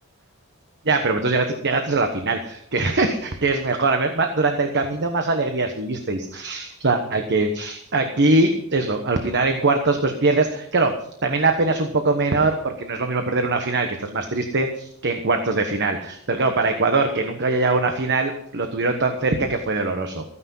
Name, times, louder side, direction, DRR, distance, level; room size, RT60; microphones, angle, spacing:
voice 1, 0.8-10.9 11.2-20.2, right 3 dB, 50° right, 6 dB, 1.2 m, -22 dB
15.0 x 9.8 x 5.6 m, 0.70 s
head